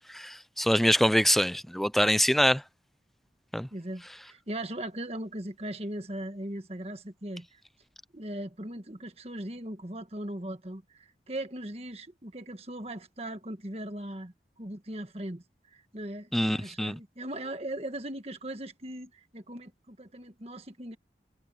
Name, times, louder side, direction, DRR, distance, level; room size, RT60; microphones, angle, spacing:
voice 1, 0.1-2.6 3.5-3.7 16.3-16.9, equal, ahead, 0.4 m, -24 dB
voice 2, 3.7-7.6 8.1-21.0, right 1 dB, 35° right, 1.6 m, -39 dB
head